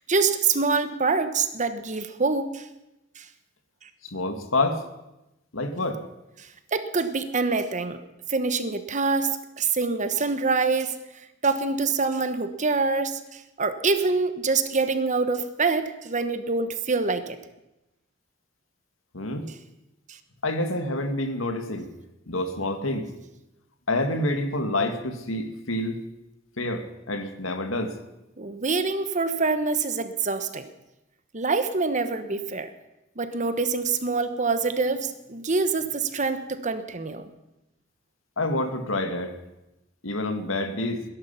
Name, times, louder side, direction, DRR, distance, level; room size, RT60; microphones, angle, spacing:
voice 1, 0.0-2.7 3.2-3.3 3.8-3.9 6.4-8.0 8.3-11.0 11.4-17.4 20.1-20.2 28.4-30.6 31.3-32.7 33.2-37.3, right 4 dB, 40° right, 10 dB, 1.1 m, -25 dB
voice 2, 4.0-4.8 5.5-6.0 19.1-19.5 20.4-21.9 22.3-23.1 23.9-26.0 26.6-28.0 38.4-39.4 40.0-41.0, left 2 dB, 90° left, 7 dB, 1.9 m, -27 dB
21.0 x 11.0 x 5.8 m, 0.94 s
head